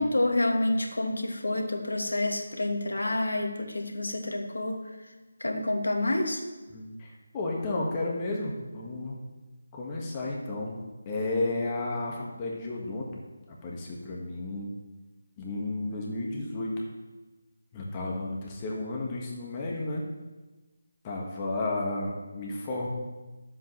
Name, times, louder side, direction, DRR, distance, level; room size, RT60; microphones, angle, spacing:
voice 1, 0.0-4.9 5.4-6.4, left 1 dB, 75° left, 4 dB, 1.6 m, -28 dB
voice 2, 6.7-9.3 9.7-10.8 11.0-13.2 13.5-14.7 15.4-16.7 17.7-20.1 21.0-22.9, left 2 dB, 20° left, -3 dB, 1.6 m, -32 dB
13.0 x 7.7 x 3.3 m, 1.2 s
figure-of-eight pair, 155°, 0 cm